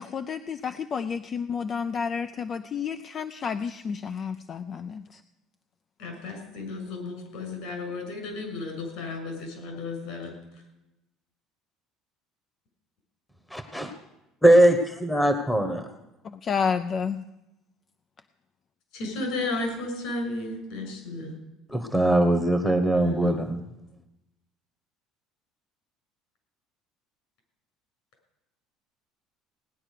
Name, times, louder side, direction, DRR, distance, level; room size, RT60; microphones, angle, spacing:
voice 1, 0.0-5.2 16.3-17.2, left 6 dB, 30° left, 11 dB, 0.5 m, -30 dB
voice 2, 6.0-10.3 18.9-21.4 23.0-23.4, left 2 dB, 70° left, 3 dB, 6.3 m, -33 dB
voice 3, 13.5-13.9 14.4-15.9 21.7-23.6, right 1 dB, 5° left, 8 dB, 1.1 m, -21 dB
18.0 x 9.9 x 6.7 m, 0.94 s
cardioid pair, 145°, 0 cm